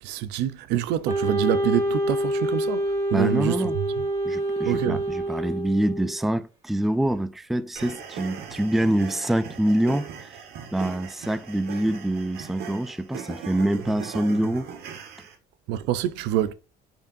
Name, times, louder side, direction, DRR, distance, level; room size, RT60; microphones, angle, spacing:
voice 1, 0.0-4.0 4.6-5.0 15.7-16.5, right 11 dB, 90° right, 0.6 m, -26 dB
Wind instrument woodwind instrument, 1.1-6.2, right 1 dB, 20° right, 1.6 m, -26 dB
voice 2, 3.1-3.8 4.2-10.4 10.7-14.7, right 1 dB, ahead, 0.3 m, -25 dB
sound 1, 7.8-15.4, right 7 dB, 70° right, 1.4 m, -39 dB
7.1 x 5.2 x 2.6 m
cardioid pair, 110°, 17 cm